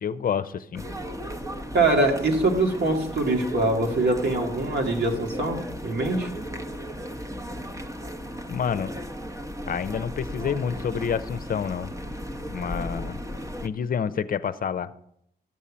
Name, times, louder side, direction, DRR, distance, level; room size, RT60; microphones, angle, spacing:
voice 1, 0.0-0.9 8.5-8.9 9.7-11.9 12.5-13.2 13.6-14.9, left 7 dB, 55° left, 12 dB, 0.6 m, -28 dB
sound 1, 0.8-13.7, equal, 20° right, 1.1 m, -36 dB
voice 2, 1.7-5.6 5.8-6.3, right 2 dB, 75° right, 1 dB, 2.5 m, -23 dB
14.0 x 5.6 x 8.6 m, 0.74 s
cardioid pair, 80°, 17 cm